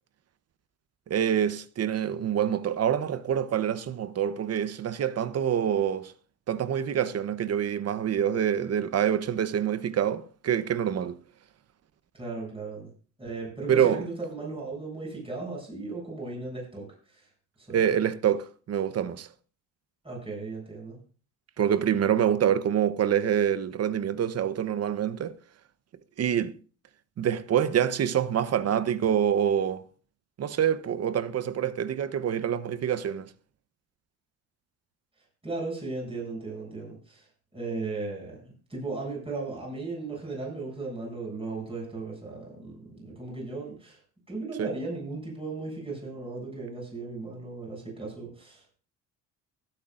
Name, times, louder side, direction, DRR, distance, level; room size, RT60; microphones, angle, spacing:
voice 1, 1.1-6.1 6.5-11.2 13.7-14.0 17.7-19.3 21.6-25.4 26.2-26.5 27.2-29.8 30.4-33.3 44.6-44.7, right 9 dB, 45° right, 0.9 m, -26 dB
voice 2, 12.1-12.9 13.2-17.3 17.6-17.8 20.0-21.0 35.4-44.0 44.3-48.8, right 3 dB, 15° right, 7.1 m, -36 dB
23.5 x 8.8 x 2.5 m
cardioid pair, 95°, 36 cm